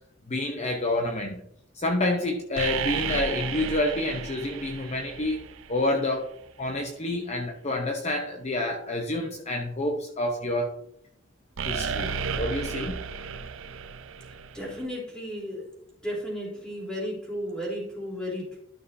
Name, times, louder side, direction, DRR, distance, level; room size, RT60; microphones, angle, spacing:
voice 1, 0.3-1.4 1.7-5.4 5.7-10.7 11.6-13.0, left 1 dB, 35° left, 2 dB, 0.9 m, -28 dB
sound 1, 2.6-5.8 11.6-14.8, right 6 dB, 80° right, 0.6 m, -33 dB
voice 2, 14.5-15.6 16.0-18.6, equal, 5° left, -4 dB, 3.5 m, -34 dB
12.5 x 6.6 x 2.7 m, 0.74 s
head